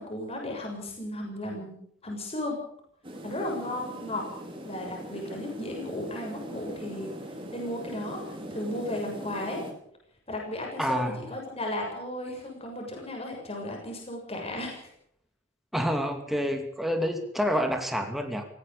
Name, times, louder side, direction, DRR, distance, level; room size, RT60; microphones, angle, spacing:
voice 1, 0.0-2.6 3.2-4.2 4.6-7.1 7.5-8.2 8.5-9.6 10.3-14.9, left 1 dB, 30° left, 0 dB, 6.9 m, -35 dB
sound 1, 3.0-9.7, equal, 30° right, 5.2 m, -41 dB
voice 2, 10.8-11.2 15.7-18.4, equal, ahead, 4 dB, 2.6 m, -28 dB
18.5 x 16.5 x 8.7 m, 0.67 s
head